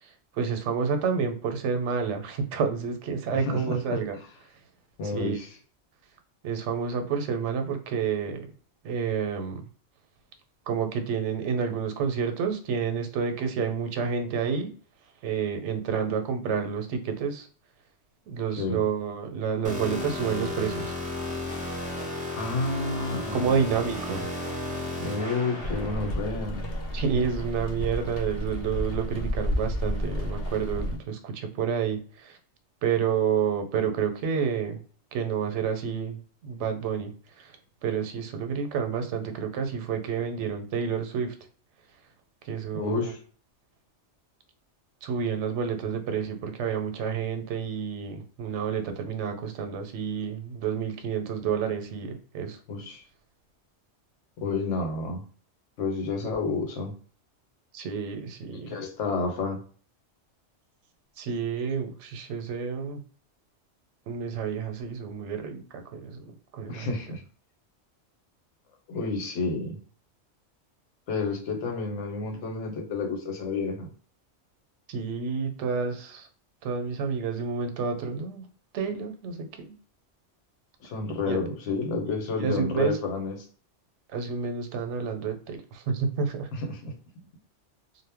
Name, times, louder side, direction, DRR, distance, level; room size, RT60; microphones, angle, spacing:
voice 1, 0.0-4.2 5.1-5.4 6.4-8.5 8.8-9.6 10.7-14.7 15.2-17.5 18.3-20.9 23.3-24.3 26.9-32.4 32.8-34.8 35.1-37.6 37.8-41.3 42.4-43.1 45.0-52.6 57.7-58.8 61.2-63.0 64.1-67.1 74.9-76.3 76.6-78.5 78.7-79.7 81.3-81.4 82.4-83.0 84.1-86.5, right 6 dB, 85° right, 6 dB, 0.9 m, -29 dB
voice 2, 3.5-4.0 5.0-5.5 18.6-18.8 22.4-23.5 25.0-26.7 42.7-43.2 52.7-53.0 54.4-55.2 55.8-56.9 58.5-59.6 66.7-67.2 68.9-69.8 71.1-73.9 80.8-83.4 86.6-86.9, left 3 dB, 85° left, 2 dB, 1.1 m, -30 dB
sound 1, 19.6-26.1, left 2 dB, 10° right, 0.6 m, -34 dB
Rain, 25.6-31.0, equal, 65° left, 0.8 m, -31 dB
2.0 x 2.0 x 3.4 m, 0.43 s
omnidirectional pair, 1.2 m